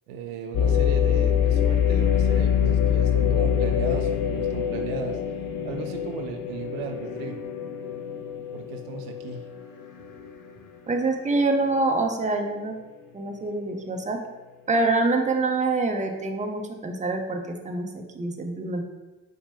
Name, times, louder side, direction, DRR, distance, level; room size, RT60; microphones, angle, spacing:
voice 1, 0.1-5.2 5.6-7.4 8.5-9.4, right 6 dB, 80° right, 5 dB, 0.5 m, -36 dB
sound 1, 0.5-10.5 11.0-11.1 11.7-12.1, left 8 dB, 55° left, 0.6 m, -25 dB
voice 2, 10.9-12.8 13.1-14.2 14.7-18.8, right 3 dB, 20° right, 4 dB, 0.7 m, -25 dB
5.0 x 2.2 x 4.7 m, 1.1 s
hypercardioid pair, 40°, 38 cm